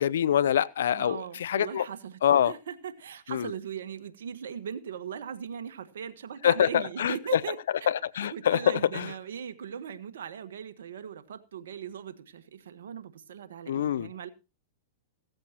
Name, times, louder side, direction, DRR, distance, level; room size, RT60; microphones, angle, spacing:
voice 1, 0.0-1.9 2.2-2.5 3.3-3.5 6.4-7.4 7.9-9.1 13.7-14.1, left 9 dB, 80° left, 0.7 m, -25 dB
voice 2, 0.9-2.2 2.4-7.6 8.2-14.3, right 7 dB, 80° right, 1.5 m, -39 dB
16.0 x 14.0 x 3.0 m
hypercardioid pair, 120°, 0 cm